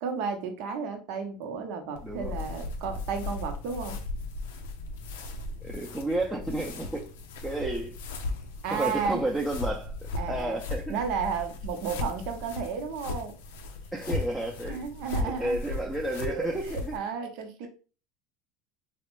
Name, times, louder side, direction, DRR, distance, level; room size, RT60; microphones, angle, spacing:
voice 1, 0.0-4.0 8.6-9.2 10.2-10.6 10.9-13.3 14.7-15.6 16.0-17.7, right 6 dB, 65° right, 0.7 m, -33 dB
sound 1, 1.9-17.0, left 3 dB, 80° left, 0.5 m, -37 dB
voice 2, 2.0-2.4 5.6-7.1 7.4-7.9 8.7-9.9 10.3-11.0 13.9-14.8 15.2-16.9, right 1 dB, 10° right, 0.6 m, -31 dB
3.2 x 2.1 x 3.0 m
hypercardioid pair, 85°, 0 cm